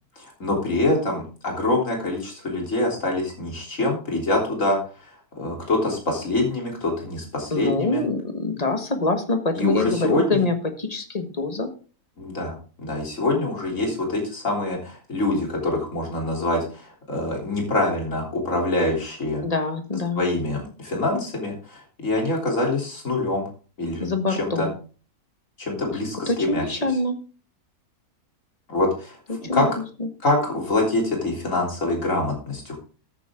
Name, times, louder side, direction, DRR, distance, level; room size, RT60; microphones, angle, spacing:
voice 1, 0.4-4.8 5.4-8.0 9.6-10.4 12.2-19.4 20.2-23.4 23.8-24.1 24.4-24.7 25.6-26.8 28.7-29.2 29.5-29.7 30.2-32.8, left 2 dB, 55° left, 0 dB, 3.9 m, -25 dB
voice 2, 7.5-11.7 19.4-20.2 24.0-24.7 26.3-27.1 29.3-29.7 30.0-30.1, left 2 dB, 25° left, 7 dB, 1.4 m, -25 dB
14.0 x 9.0 x 3.7 m, 0.38 s
omnidirectional pair, 1.6 m